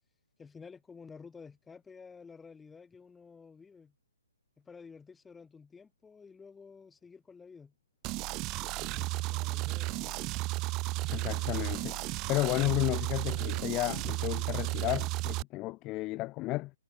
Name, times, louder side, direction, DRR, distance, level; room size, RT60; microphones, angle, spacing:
voice 1, 0.4-3.9 4.6-7.7 8.5-10.3, left 5 dB, 10° left, 4.3 m, -52 dB
sound 1, 8.0-15.4, right 22 dB, 25° right, 0.9 m, -33 dB
sound 2, 8.9-14.2, left 6 dB, 65° left, 3.8 m, -56 dB
voice 2, 11.1-12.0 12.3-16.7, left 20 dB, 25° left, 0.3 m, -32 dB
figure-of-eight pair, 135°, 0 cm